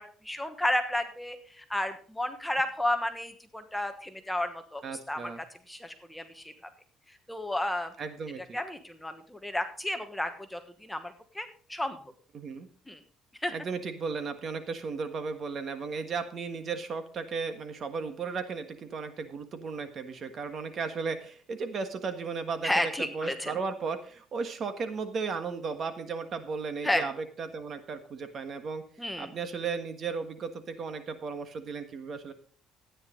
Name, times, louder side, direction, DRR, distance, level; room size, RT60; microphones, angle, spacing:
voice 1, 0.0-4.8 5.1-5.3 5.7-6.5 7.3-7.9 8.5-12.0 12.9-13.0 13.4-13.5 22.6-23.5 26.8-27.0 29.0-29.3, left 1 dB, 5° left, 7 dB, 1.2 m, -32 dB
voice 2, 4.8-5.4 8.0-8.6 12.3-12.7 13.5-28.8 29.2-32.3, right 5 dB, 45° right, 9 dB, 1.6 m, -35 dB
13.0 x 9.6 x 3.9 m, 0.43 s
cardioid pair, 125°, 0 cm